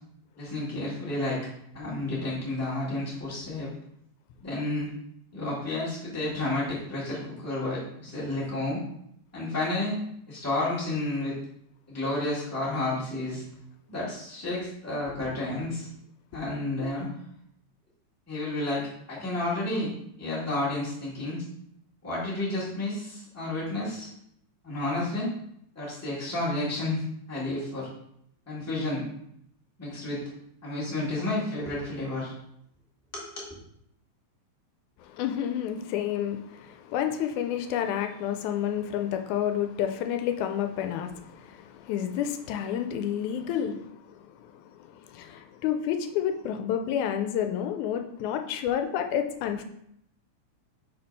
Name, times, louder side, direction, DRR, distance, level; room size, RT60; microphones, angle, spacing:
voice 1, 0.4-1.4 1.7-3.7 4.4-4.9 5.3-8.8 9.3-10.0 10.3-11.3 11.9-13.5 13.9-15.9 16.3-17.1 18.3-19.9 20.2-21.5 22.0-24.1 24.6-25.3 25.7-27.9 28.4-29.0 29.8-30.2 30.6-32.3 33.1-33.6, left 2 dB, 5° left, -7 dB, 1.4 m, -31 dB
voice 2, 35.1-43.9 44.5-49.6, left 9 dB, 85° left, 6 dB, 2.0 m, -30 dB
4.6 x 4.3 x 5.3 m, 0.74 s
omnidirectional pair, 3.4 m